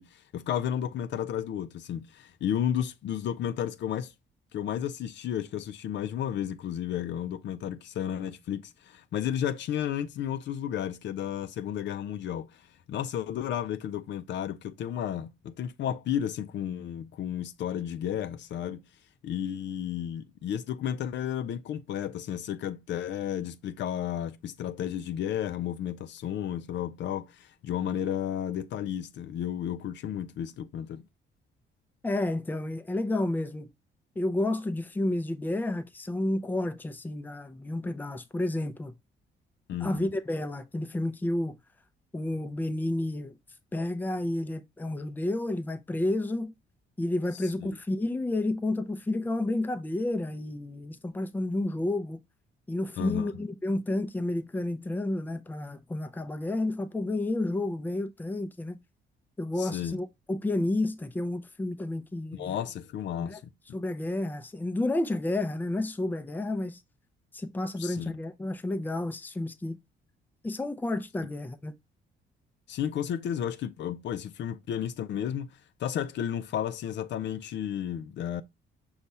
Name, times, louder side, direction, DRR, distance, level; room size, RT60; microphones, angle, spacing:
voice 1, 0.0-4.1 4.5-12.5 12.9-18.8 19.2-31.0 39.7-40.1 47.3-47.7 53.0-53.3 59.6-60.0 62.3-63.4 67.8-68.1 72.7-75.5 75.8-78.4, left 10 dB, 65° left, 0.5 m, -32 dB
voice 2, 32.0-33.7 34.2-38.9 39.8-41.5 42.1-43.3 43.7-46.5 47.0-52.2 52.7-58.8 59.4-62.6 63.2-63.4 63.7-66.8 67.3-69.8 70.4-71.7, left 2 dB, 10° left, 0.5 m, -31 dB
5.3 x 2.4 x 4.1 m
cardioid pair, 90°, 20 cm